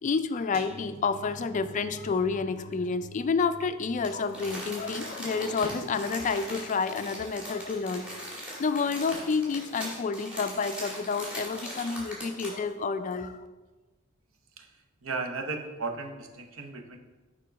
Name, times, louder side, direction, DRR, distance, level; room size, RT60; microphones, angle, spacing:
voice 1, 0.0-13.5, left 4 dB, 35° left, 11 dB, 0.3 m, -29 dB
sound 1, 0.5-7.6 8.0-8.3 8.6-8.7, right 2 dB, 30° right, 0.5 m, -49 dB
Crumpling crinkling, 4.0-12.7 13.1-13.2, equal, 5° right, 2.0 m, -40 dB
voice 2, 15.0-17.0, right 4 dB, 70° right, 4 dB, 0.8 m, -35 dB
6.8 x 3.7 x 5.1 m, 1.2 s
head